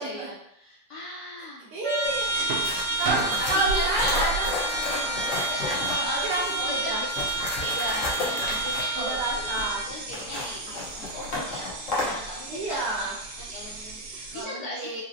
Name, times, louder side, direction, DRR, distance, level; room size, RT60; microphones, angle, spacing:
voice 1, 0.0-1.7 3.5-4.4 4.6-7.1 7.4-13.1 13.5-15.0, left 1 dB, 75° left, -5 dB, 0.9 m, -37 dB
voice 2, 1.7-2.3 3.0-4.5 5.0-5.1 6.1-7.0 9.0-9.8 12.5-13.2 14.3-15.0, right 2 dB, 70° right, -3 dB, 1.0 m, -29 dB
Trumpet, 1.8-9.9, right 2 dB, 15° right, 0.5 m, -30 dB
sound 1, 2.0-14.4, right 3 dB, 85° right, 1.4 m, -36 dB
sound 2, 2.6-6.5 7.0-12.2, left 2 dB, 50° left, 1.0 m, -33 dB
4.0 x 2.0 x 2.6 m, 0.80 s
omnidirectional pair, 2.2 m